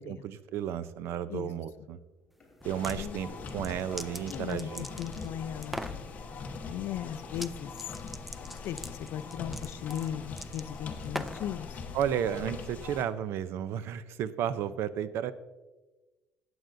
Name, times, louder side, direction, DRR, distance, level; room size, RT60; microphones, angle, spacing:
voice 1, 0.0-2.0 2.6-4.8 11.9-15.3, right 9 dB, 65° right, 14 dB, 0.5 m, -33 dB
sound 1, 0.9-1.0 1.4-1.5 1.9-8.5 8.7-9.3 9.7-9.9 10.2-10.3 10.8-11.0 11.3-11.5 12.0-12.5 13.1-13.2 13.5-14.2 14.6-14.7, left 1 dB, 20° left, 3.1 m, -56 dB
sound 2, 2.6-13.0, left 4 dB, 35° left, 1.2 m, -42 dB
sound 3, 2.6-3.0 3.5-5.3 5.6-6.0 7.3-7.5 7.8-11.5, equal, ahead, 0.4 m, -41 dB
voice 2, 4.3-5.8 6.7-7.9 8.4-11.8, left 10 dB, 65° left, 14 dB, 0.5 m, -37 dB
18.5 x 7.8 x 2.6 m, 1.2 s
cardioid pair, 125°, 4 cm